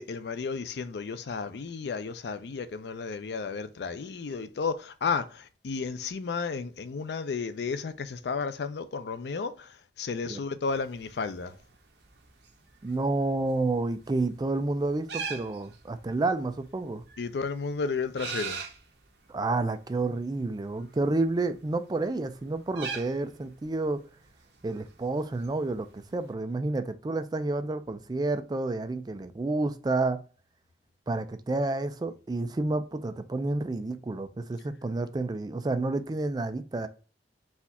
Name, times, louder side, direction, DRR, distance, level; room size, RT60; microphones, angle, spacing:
voice 1, 0.0-11.6 17.2-18.6, left 5 dB, 65° left, 0.4 m, -33 dB
sound 1, 10.7-26.3, right 5 dB, 70° right, 0.8 m, -44 dB
voice 2, 12.8-17.0 19.3-24.0 24.6-30.2 31.1-36.9, right 2 dB, 20° right, 0.3 m, -30 dB
4.2 x 2.4 x 4.0 m
head